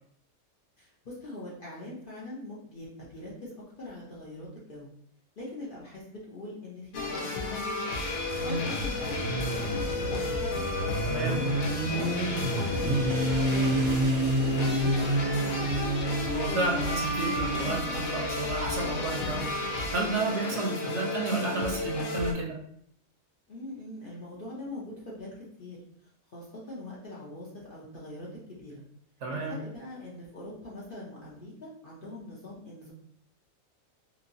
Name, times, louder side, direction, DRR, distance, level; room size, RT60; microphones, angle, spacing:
voice 1, 0.8-4.9 5.4-7.9 8.4-10.4 11.2-15.6 23.5-25.8 26.3-28.8 29.3-32.9, left 1 dB, 55° left, -5 dB, 0.7 m, -43 dB
sound 1, 6.9-22.3, left 3 dB, 80° left, 1.0 m, -33 dB
Motorcycle, 8.1-19.8, right 1 dB, 90° right, 1.1 m, -30 dB
voice 2, 11.1-11.4 16.3-22.6 29.2-29.6, right 3 dB, 65° right, 0 dB, 0.8 m, -32 dB
2.9 x 2.8 x 2.6 m, 0.66 s
omnidirectional pair, 1.5 m